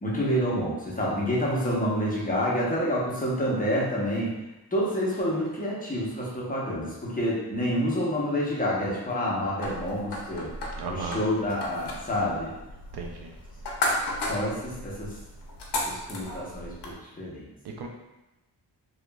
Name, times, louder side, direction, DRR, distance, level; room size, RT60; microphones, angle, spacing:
voice 1, 0.0-4.3 4.7-10.5 10.9-12.5 14.2-15.1 15.9-17.5, equal, 20° left, -5 dB, 0.8 m, -28 dB
sound 1, 9.6-16.9, left 1 dB, 75° left, 0.7 m, -34 dB
voice 2, 10.8-11.2 12.9-13.3 17.6-17.9, right 4 dB, 70° right, 1 dB, 0.5 m, -35 dB
2.8 x 2.4 x 2.2 m, 1.0 s
cardioid pair, 85°, 40 cm